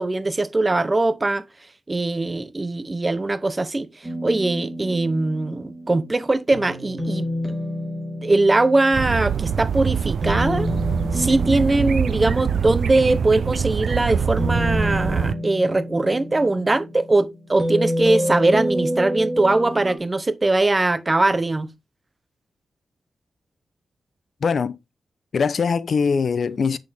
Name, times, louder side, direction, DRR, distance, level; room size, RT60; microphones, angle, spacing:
voice 1, 0.0-1.4 1.9-7.3 8.2-10.7 11.1-21.7, right 2 dB, 25° right, 0.9 m, -21 dB
sound 1, 4.0-20.0, equal, 10° right, 4.1 m, -29 dB
sound 2, 8.9-15.3, right 7 dB, 75° right, 0.5 m, -24 dB
voice 2, 24.4-24.8 25.3-26.8, left 5 dB, 65° left, 0.6 m, -22 dB
8.2 x 6.6 x 3.5 m
cardioid pair, 70°, 0 cm